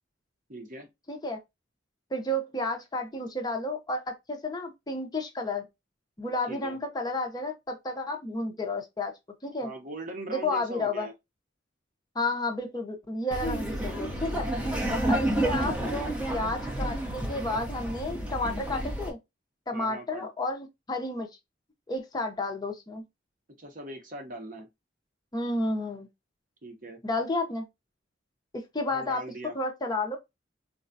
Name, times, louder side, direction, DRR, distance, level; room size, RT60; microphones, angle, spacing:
voice 1, 0.5-0.9 6.5-6.8 9.6-11.1 19.7-20.3 23.6-24.7 26.6-27.0 28.9-29.5, right 1 dB, 45° right, 0.8 m, -40 dB
voice 2, 1.1-1.4 2.1-5.7 6.2-9.1 9.4-9.7 10.3-11.1 12.1-14.5 15.1-19.2 19.7-21.3 21.9-23.0 25.3-26.1 27.0-27.6 28.5-29.2 29.5-30.2, left 2 dB, 20° left, 0.6 m, -31 dB
Laughter, 13.3-19.1, right 1 dB, 5° right, 0.8 m, -30 dB
3.8 x 2.2 x 2.5 m
head